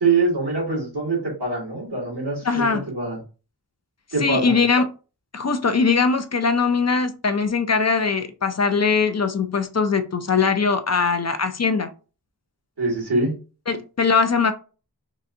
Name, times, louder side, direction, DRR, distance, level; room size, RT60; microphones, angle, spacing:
voice 1, 0.0-2.6 2.9-3.2 4.1-4.6 12.8-13.3, right 3 dB, 75° right, 1.8 m, -23 dB
voice 2, 2.4-2.9 4.2-4.9 5.3-11.9 13.7-14.5, left 5 dB, 45° left, 0.4 m, -21 dB
3.9 x 2.5 x 2.5 m
wide cardioid pair, 55°, 40 cm